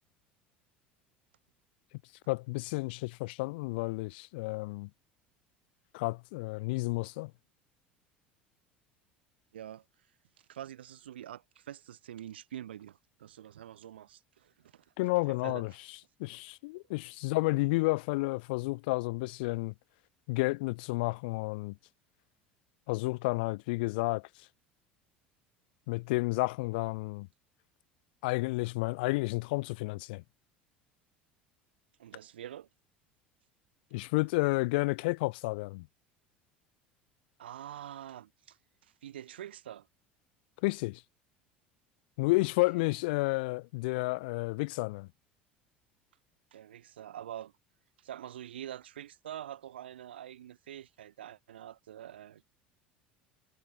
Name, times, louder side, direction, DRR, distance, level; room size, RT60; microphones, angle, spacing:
voice 1, 2.3-4.9 5.9-7.3 15.0-15.7 16.2-19.7 20.3-21.8 22.9-24.3 25.9-27.3 28.2-30.2 33.9-35.9 40.6-41.0 42.2-45.1, left 24 dB, 65° left, 1.2 m, -31 dB
voice 2, 9.5-9.8 10.5-14.8 15.3-15.6 32.0-32.7 37.4-38.6 38.8-39.9 46.5-47.5 48.0-52.4, right 11 dB, 75° right, 0.8 m, -45 dB
figure-of-eight pair, 70°, 6 cm